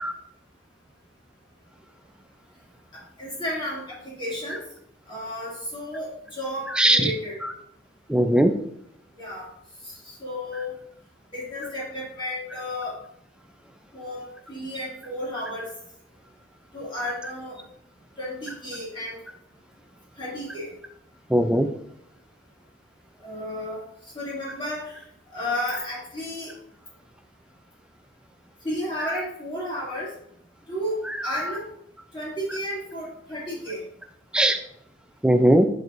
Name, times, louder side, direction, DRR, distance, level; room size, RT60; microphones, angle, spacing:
voice 1, 3.2-4.6 5.1-7.4 9.2-9.5 9.8-10.7 11.3-13.0 13.9-14.2 14.5-15.7 16.7-17.6 18.2-19.2 20.2-20.7 23.2-23.8 24.1-25.0 25.3-26.5 28.6-30.1 30.7-31.0 31.2-31.6 32.1-33.8, left 1 dB, 25° left, -7 dB, 2.5 m, -32 dB
voice 2, 6.7-7.1 7.4-7.5 8.1-8.5 21.3-21.7 31.1-31.5 34.3-34.6 35.2-35.7, right 1 dB, 5° right, 6 dB, 0.4 m, -19 dB
7.6 x 6.1 x 2.6 m, 0.73 s
head